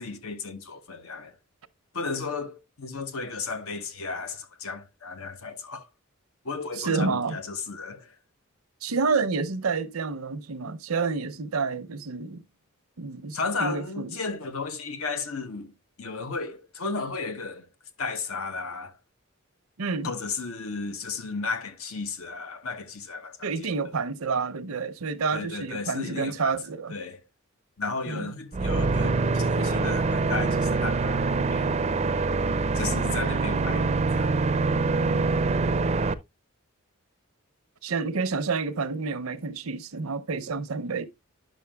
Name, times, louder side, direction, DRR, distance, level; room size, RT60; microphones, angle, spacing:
voice 1, 0.0-1.3 1.9-5.9 6.4-8.1 13.3-15.7 16.0-17.7 18.0-18.9 20.0-23.7 25.3-26.6 26.9-27.2 27.8-31.9 32.7-33.9 34.1-34.3, left 4 dB, 80° left, 1.0 m, -34 dB
voice 2, 6.8-7.4 8.8-12.4 13.0-14.2 19.8-20.1 23.4-26.9 28.1-28.3 37.8-41.0, right 4 dB, 80° right, 0.7 m, -29 dB
sound 1, 28.5-36.1, right 3 dB, 30° right, 0.4 m, -25 dB
10.5 x 6.2 x 2.3 m
head